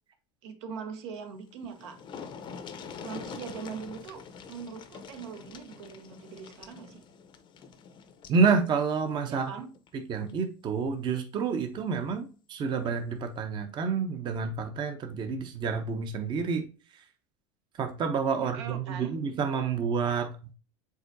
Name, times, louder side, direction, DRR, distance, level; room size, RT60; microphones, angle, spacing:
voice 1, 0.4-2.0 3.0-7.0 9.3-9.7 18.4-19.1, right 6 dB, 80° right, 1.0 m, -41 dB
sound 1, 1.3-1.4 1.6-8.5 9.8-9.9 10.3-10.4, left 6 dB, 35° left, 0.6 m, -45 dB
voice 2, 8.3-9.5 9.9-16.7 17.8-20.5, right 5 dB, 35° right, 0.7 m, -29 dB
4.8 x 3.7 x 2.6 m
supercardioid pair, 125°, 14 cm